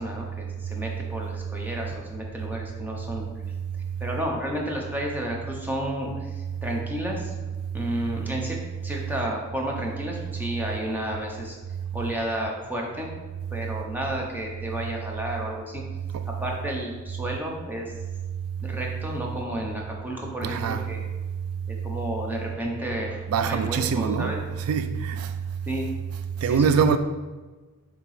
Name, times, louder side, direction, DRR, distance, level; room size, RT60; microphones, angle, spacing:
voice 1, 0.0-3.3 4.0-6.1 6.4-7.3 7.7-11.6 11.9-13.1 13.5-15.8 16.4-17.9 18.6-21.0 21.7-24.4 25.7-25.9 26.5-26.7, equal, 10° right, 0.8 m, -32 dB
voice 2, 20.4-20.8 23.3-25.3 26.4-27.0, right 6 dB, 85° right, 0.3 m, -23 dB
6.7 x 2.9 x 4.8 m
head